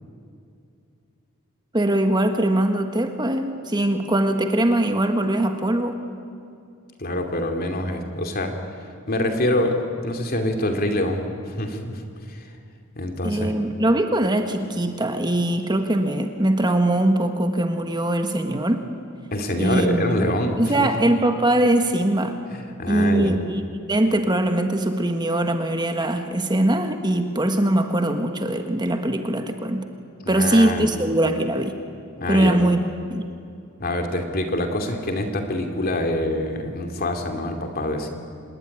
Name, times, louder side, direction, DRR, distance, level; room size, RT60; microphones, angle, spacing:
voice 1, 1.7-6.0 13.2-18.9 19.6-20.2 20.6-22.4 22.9-29.8 30.3-31.8 32.3-32.8 33.1-33.3, right 1 dB, 20° right, 6 dB, 1.5 m, -21 dB
voice 2, 7.0-8.5 9.1-12.0 12.3-12.4 13.0-13.5 19.3-20.9 22.5-23.3 30.2-30.9 32.2-32.6 33.8-38.1, left 1 dB, 45° left, 4 dB, 2.8 m, -25 dB
26.5 x 20.0 x 9.9 m, 2.5 s
head